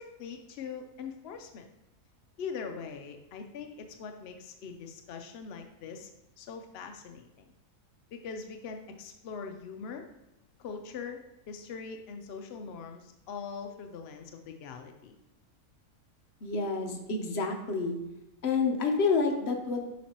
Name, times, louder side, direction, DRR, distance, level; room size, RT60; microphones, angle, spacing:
voice 1, 0.0-1.7 2.4-6.1 6.4-7.5 8.1-10.0 10.6-11.2 11.5-15.2, left 5 dB, 75° left, 5 dB, 0.5 m, -42 dB
voice 2, 16.4-17.9 18.4-19.9, left 4 dB, 50° left, 3 dB, 0.9 m, -28 dB
7.2 x 5.2 x 2.9 m, 0.94 s
omnidirectional pair, 1.6 m